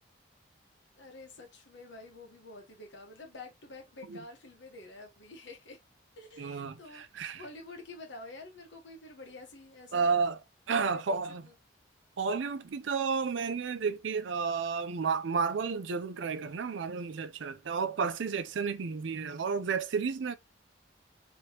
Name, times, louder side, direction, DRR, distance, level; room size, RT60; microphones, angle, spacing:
voice 1, 0.9-5.8 6.2-10.1 10.8-11.2 11.4-11.5, left 2 dB, 80° left, 1.2 m, -48 dB
voice 2, 6.4-7.4 9.9-10.4 10.7-11.4 12.2-20.4, right 5 dB, 80° right, 0.5 m, -31 dB
3.1 x 3.0 x 2.9 m
head